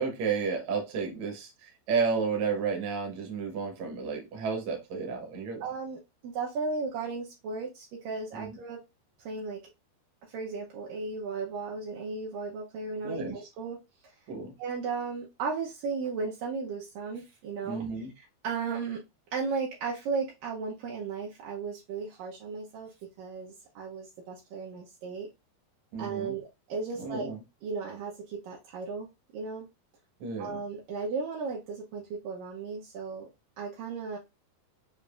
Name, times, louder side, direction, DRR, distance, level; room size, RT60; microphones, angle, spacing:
voice 1, 0.0-5.6 8.3-8.6 13.0-13.4 14.3-14.5 17.6-18.1 25.9-26.4 27.0-27.4 30.2-30.6, right 5 dB, 70° right, 1.6 m, -32 dB
voice 2, 5.6-8.8 9.3-9.6 10.3-13.8 14.6-19.0 19.3-25.3 26.0-27.3 27.6-29.1 29.3-29.7 30.4-33.3 33.6-34.2, right 4 dB, 90° right, 1.9 m, -35 dB
7.2 x 2.6 x 2.4 m
omnidirectional pair, 5.1 m